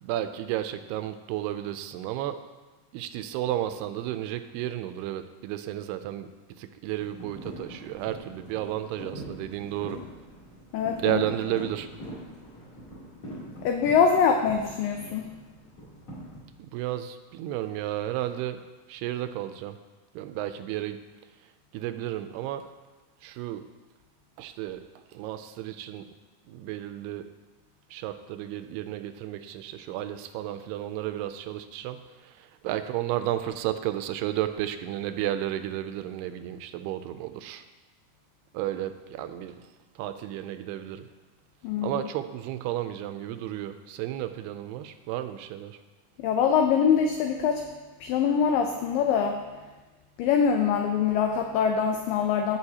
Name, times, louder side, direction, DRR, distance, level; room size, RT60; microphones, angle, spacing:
voice 1, 0.0-2.4 2.9-6.3 6.6-10.0 11.0-11.9 16.6-18.6 18.9-19.8 20.2-21.0 21.7-22.7 23.2-23.7 24.4-24.9 25.1-26.1 26.5-27.3 27.9-37.6 38.5-39.6 40.0-41.0 41.8-45.8, right 12 dB, 85° right, 10 dB, 2.6 m, -32 dB
sound 1, 6.9-16.4, right 1 dB, 40° left, 3.9 m, -43 dB
voice 2, 10.7-11.2 13.6-15.3 41.6-42.0 46.2-47.7 48.0-49.4 50.2-52.6, left 7 dB, 85° left, 4 dB, 1.9 m, -24 dB
16.0 x 6.4 x 2.8 m, 1.2 s
omnidirectional pair, 4.6 m